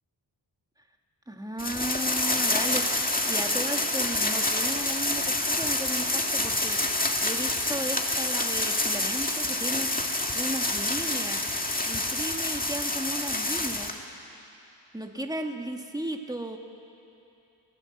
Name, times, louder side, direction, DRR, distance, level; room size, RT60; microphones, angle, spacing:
voice 1, 1.3-10.0 10.3-11.5 11.9-13.9 14.9-16.6, right 1 dB, 10° right, 3 dB, 1.9 m, -35 dB
sound 1, 1.6-14.0, left 2 dB, 20° left, 2.0 m, -27 dB
28.5 x 19.5 x 8.0 m, 2.8 s
wide cardioid pair, 90°, 42 cm